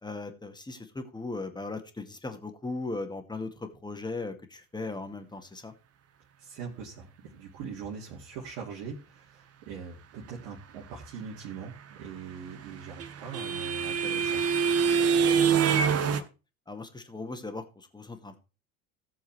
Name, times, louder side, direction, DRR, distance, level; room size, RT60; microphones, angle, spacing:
voice 1, 0.0-5.7 15.7-16.3 16.7-18.4, left 3 dB, 10° left, 6 dB, 2.0 m, -38 dB
voice 2, 6.4-14.4, right 6 dB, 55° right, -3 dB, 2.4 m, -42 dB
sound 1, 12.3-16.2, right 6 dB, 35° right, 1.4 m, -25 dB
17.0 x 7.1 x 3.3 m, 0.31 s
figure-of-eight pair, 65°, 43 cm